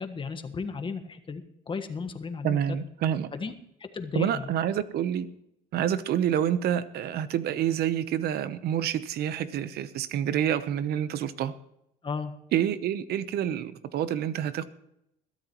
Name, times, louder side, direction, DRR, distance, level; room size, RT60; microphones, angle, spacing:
voice 1, 0.0-2.8 3.3-3.5 3.9-4.5 12.0-12.3, left 5 dB, 30° left, 1.4 m, -34 dB
voice 2, 2.4-3.3 4.1-5.3 5.7-11.5 12.5-14.7, right 10 dB, 70° right, 0.9 m, -28 dB
21.5 x 13.0 x 3.1 m
cardioid pair, 110°, 17 cm